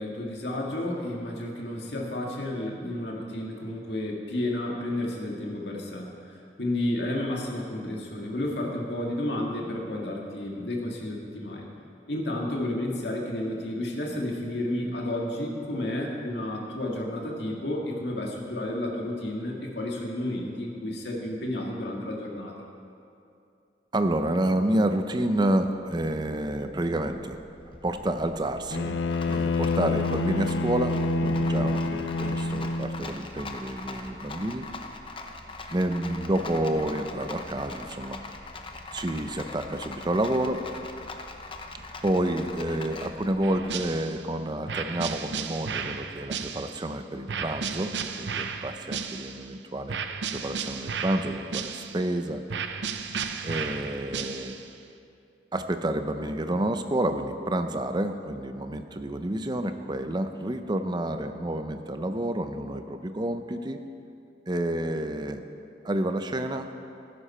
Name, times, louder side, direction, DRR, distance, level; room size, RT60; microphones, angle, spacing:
voice 1, 0.0-6.1 6.6-11.7 12.1-22.5, left 1 dB, 70° left, -1 dB, 2.0 m, -31 dB
voice 2, 23.9-27.4 27.8-29.0 29.3-34.7 35.7-38.2 38.9-40.6 42.0-50.0 50.3-52.4 53.4-54.6 55.5-63.8 64.5-65.4 65.8-66.7, right 1 dB, 25° right, 8 dB, 0.6 m, -29 dB
Rattle, 25.7-44.1, left 3 dB, 30° left, 0.8 m, -42 dB
Bowed string instrument, 28.7-33.2, left 2 dB, 85° left, 0.5 m, -27 dB
sound 1, 43.4-44.3 44.7-46.9 47.3-49.5 49.9-52.1 52.5-54.7, right 6 dB, 75° right, 0.6 m, -34 dB
15.5 x 11.5 x 4.4 m, 2.6 s
head